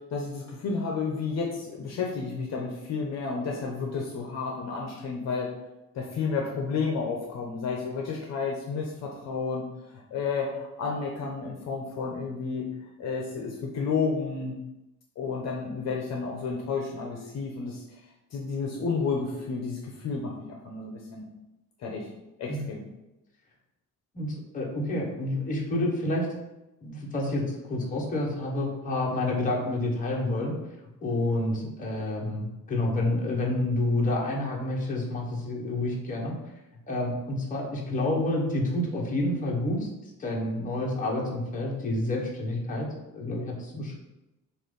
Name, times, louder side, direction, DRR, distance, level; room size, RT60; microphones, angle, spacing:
voice 1, 0.1-5.5 5.9-9.7 9.9-12.7 13.0-14.6 15.2-18.0 18.3-21.3 21.8-22.1 22.4-22.8, left 4 dB, 50° left, 0 dB, 0.9 m, -31 dB
voice 2, 24.1-26.3 26.8-30.5 31.0-36.3 36.9-39.9 40.2-42.9 43.1-43.9, left 1 dB, 25° left, -3 dB, 1.2 m, -29 dB
7.0 x 2.6 x 5.4 m, 0.96 s
cardioid pair, 170°, 34 cm